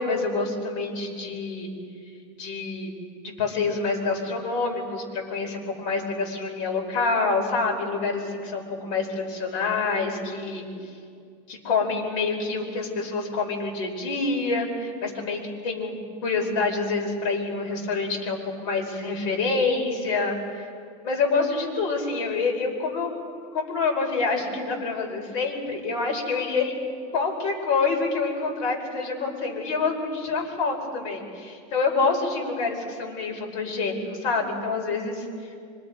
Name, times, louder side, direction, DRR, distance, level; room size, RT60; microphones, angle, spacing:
voice 1, 0.0-1.7 2.4-2.9 3.2-10.7 11.5-20.7 21.0-23.1 23.5-26.7 27.1-35.2, left 4 dB, 70° left, 1 dB, 5.1 m, -27 dB
25.0 x 24.5 x 5.2 m, 2.3 s
cardioid pair, 160°, 17 cm